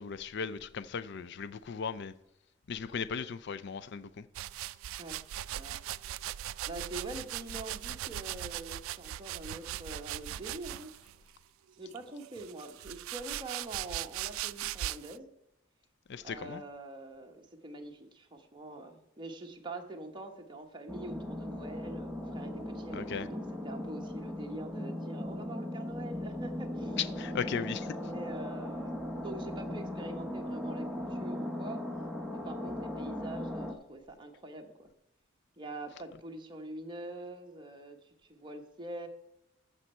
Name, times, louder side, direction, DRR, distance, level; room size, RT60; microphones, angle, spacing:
voice 1, 0.0-2.1 2.7-4.2 16.1-16.6 22.9-23.3 27.0-28.0, left 6 dB, 60° left, 0.5 m, -37 dB
sound 1, 4.3-11.1 11.9-15.2, right 13 dB, 85° right, 0.3 m, -39 dB
voice 2, 5.5-5.8 6.7-10.9 11.8-15.3 16.2-27.0 28.0-31.8 32.3-34.9 35.6-39.1, right 2 dB, 25° right, 1.1 m, -45 dB
sound 2, 20.9-33.7, left 1 dB, ahead, 1.0 m, -38 dB
14.5 x 5.5 x 4.4 m
head